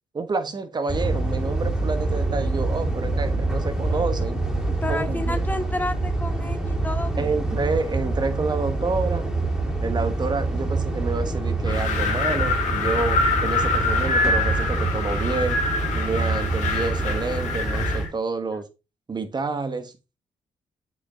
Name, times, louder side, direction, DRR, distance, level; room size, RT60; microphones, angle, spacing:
voice 1, 0.1-4.4 4.9-5.4 7.2-9.3 9.8-15.6 15.9-18.7 19.1-19.9, right 4 dB, 35° right, 1.4 m, -28 dB
sound 1, 0.9-18.1, right 2 dB, 5° right, 2.8 m, -26 dB
voice 2, 4.8-7.3, left 2 dB, 15° left, 0.7 m, -30 dB
Wind, 11.7-18.1, left 3 dB, 90° left, 1.9 m, -25 dB
8.0 x 6.0 x 3.6 m
cardioid pair, 80°, 12 cm